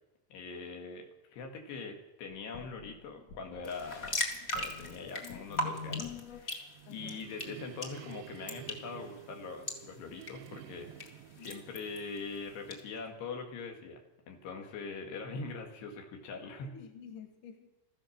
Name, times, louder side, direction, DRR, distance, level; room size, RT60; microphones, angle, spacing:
voice 1, 0.3-4.2 4.6-14.0 14.3-16.7, left 4 dB, 90° left, 2 dB, 4.0 m, -43 dB
sound 1, 2.5-6.5, left 6 dB, 70° left, 1.6 m, -46 dB
sound 2, 3.6-12.8, left 1 dB, 35° left, 1.0 m, -41 dB
sound 3, 6.4-13.1, right 13 dB, 80° right, 2.1 m, -51 dB
voice 2, 6.9-7.2 11.3-11.6 16.6-17.7, left 7 dB, 55° left, 3 dB, 3.2 m, -50 dB
16.0 x 13.5 x 6.5 m, 0.96 s
omnidirectional pair, 4.6 m